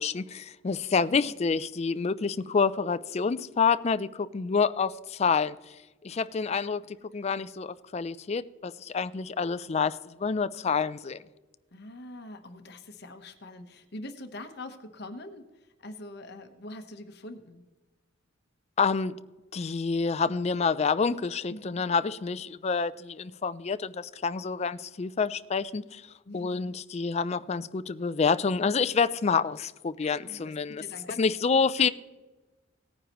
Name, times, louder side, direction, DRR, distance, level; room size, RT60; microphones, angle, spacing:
voice 1, 0.0-5.5 6.0-11.2 18.8-19.2 19.5-26.0 26.3-30.8 31.2-31.9, left 5 dB, 30° left, 0.4 m, -28 dB
voice 2, 1.0-1.3 7.1-7.5 11.7-17.6 21.5-21.8 26.2-26.6 30.0-31.2 31.8-31.9, left 1 dB, 55° left, 1.1 m, -44 dB
18.0 x 9.6 x 3.0 m
head